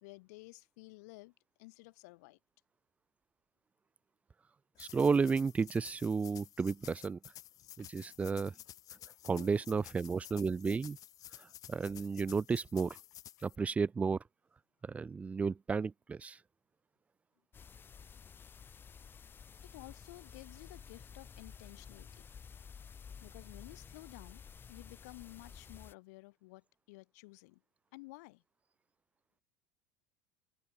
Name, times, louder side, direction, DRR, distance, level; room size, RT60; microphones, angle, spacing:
voice 1, 0.0-2.4 7.8-7.9 9.1-9.9 19.6-22.2 23.2-24.4 24.7-27.6 27.9-28.4, left 24 dB, 75° left, 1.3 m, -53 dB
sound 1, 4.8-13.6, left 13 dB, 40° left, 2.1 m, -53 dB
voice 2, 4.8-7.2 7.8-8.5 9.2-11.0 11.4-13.0 13.4-14.2 14.8-16.4, right 5 dB, 15° right, 0.4 m, -32 dB
sound 2, 17.5-25.9, left 6 dB, 25° left, 2.2 m, -52 dB
supercardioid pair, 130°, 9 cm